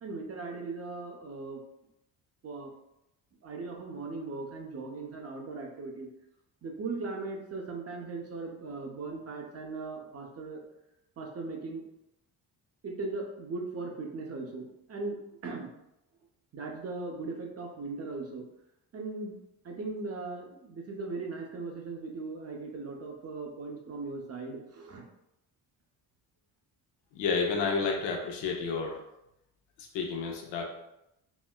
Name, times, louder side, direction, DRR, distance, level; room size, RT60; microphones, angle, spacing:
voice 1, 0.0-1.6 2.4-2.7 3.4-6.1 6.6-10.6 11.2-11.8 12.8-15.7 16.5-18.4 18.9-19.4 19.6-25.0, right 3 dB, 35° right, 1 dB, 0.7 m, -38 dB
voice 2, 27.1-29.0 29.8-30.6, left 4 dB, 85° left, 1 dB, 0.8 m, -30 dB
4.1 x 2.1 x 2.2 m, 0.83 s
cardioid pair, 80°, 41 cm